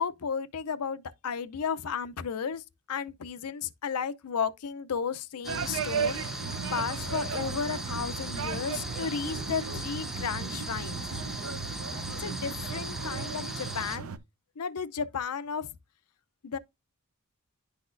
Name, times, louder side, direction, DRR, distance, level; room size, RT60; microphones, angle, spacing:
voice 1, 0.0-2.6 2.9-11.0 12.2-14.1 14.6-15.7 16.4-16.6, left 6 dB, 90° left, 0.6 m, -33 dB
sound 1, 5.4-14.0, equal, ahead, 0.6 m, -39 dB
sound 2, 5.5-14.2, right 5 dB, 70° right, 0.6 m, -35 dB
10.5 x 4.1 x 2.5 m
head